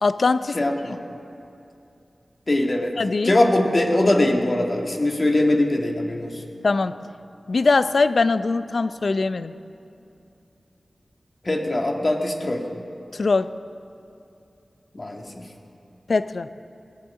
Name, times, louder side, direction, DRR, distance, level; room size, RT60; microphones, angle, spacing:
voice 1, 0.0-0.6 3.0-3.4 6.6-7.0 7.5-9.5 13.1-13.5 16.1-16.5, left 3 dB, 70° left, 12 dB, 0.5 m, -21 dB
voice 2, 0.5-1.0 2.5-3.0 3.2-6.4 11.4-12.7 14.9-15.5, left 1 dB, 45° left, 1 dB, 2.0 m, -21 dB
21.0 x 15.5 x 3.7 m, 2.7 s
cardioid pair, 45°, 0 cm